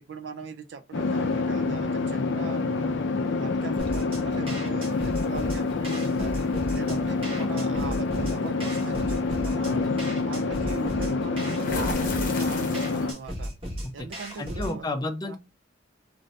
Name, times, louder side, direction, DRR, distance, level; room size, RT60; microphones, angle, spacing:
voice 1, 0.1-3.0 3.4-6.3 6.7-9.8 10.2-13.5 13.9-14.9 15.2-15.4, right 5 dB, 70° right, 0.4 m, -40 dB
sound 1, 0.9-13.1, left 3 dB, 75° left, 0.4 m, -27 dB
sound 2, 3.8-14.8, equal, 30° right, 1.2 m, -36 dB
sound 3, 4.9-5.5 6.9-7.1 7.6-7.8 11.5-13.2, left 3 dB, 50° left, 0.8 m, -35 dB
voice 2, 14.4-15.4, left 2 dB, 20° left, 0.4 m, -31 dB
2.7 x 2.6 x 3.1 m
head